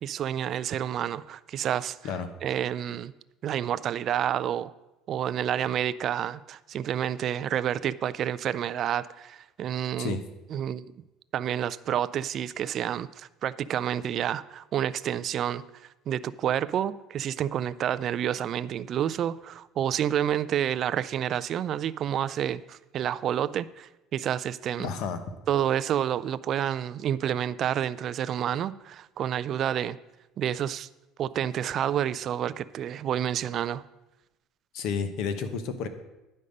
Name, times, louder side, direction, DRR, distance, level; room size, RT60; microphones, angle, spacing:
voice 1, 0.0-2.0 2.4-3.1 3.4-4.7 5.1-10.2 10.5-10.9 11.3-15.6 16.1-24.9 25.5-30.0 30.4-30.9 31.2-33.8, right 10 dB, 40° right, 16 dB, 0.3 m, -29 dB
voice 2, 24.8-25.2 34.7-35.9, left 6 dB, 60° left, 10 dB, 0.9 m, -31 dB
9.8 x 5.3 x 6.4 m, 0.98 s
cardioid pair, 145°, 0 cm